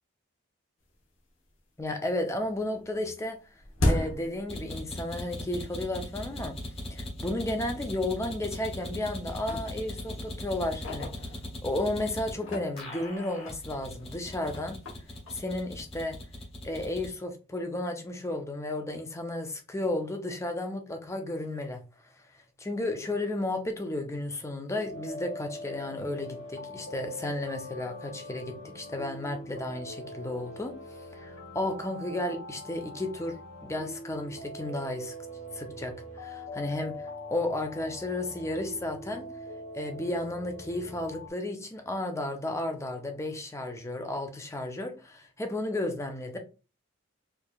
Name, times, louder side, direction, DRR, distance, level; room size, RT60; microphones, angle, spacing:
sound 1, 1.0-1.1 1.5-2.1 2.3-5.2 5.5-5.7 6.4-6.5 7.0-7.1 7.4-7.6 8.3-8.8 9.2-11.8 12.3-16.2, left 1 dB, 70° left, 1.1 m, -36 dB
voice 1, 1.8-3.4 3.8-6.6 6.9-11.3 11.6-14.8 15.3-16.2 16.6-21.8 22.6-30.7 31.1-35.1 35.5-39.3 39.7-46.4, left 1 dB, 15° left, 0.5 m, -33 dB
sound 2, 4.5-12.3 12.8-17.1, left 1 dB, 30° left, 1.4 m, -39 dB
sound 3, 24.7-41.3, equal, 90° left, 2.0 m, -42 dB
4.6 x 2.7 x 2.4 m
head